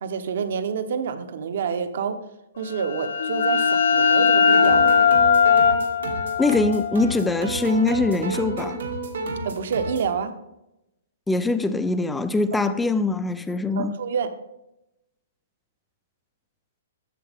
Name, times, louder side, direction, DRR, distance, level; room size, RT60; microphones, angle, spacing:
voice 1, 0.0-2.2 2.6-5.0 9.4-10.3 12.6-12.7 13.8-14.3, right 6 dB, 55° right, 0.9 m, -28 dB
sound 1, 2.7-8.2, left 6 dB, 60° left, 0.8 m, -20 dB
sound 2, 4.5-10.1, right 2 dB, 80° right, 2.3 m, -31 dB
voice 2, 6.4-8.8 11.3-13.9, left 3 dB, 5° left, 0.3 m, -23 dB
12.5 x 7.3 x 3.5 m
hypercardioid pair, 175°, 0 cm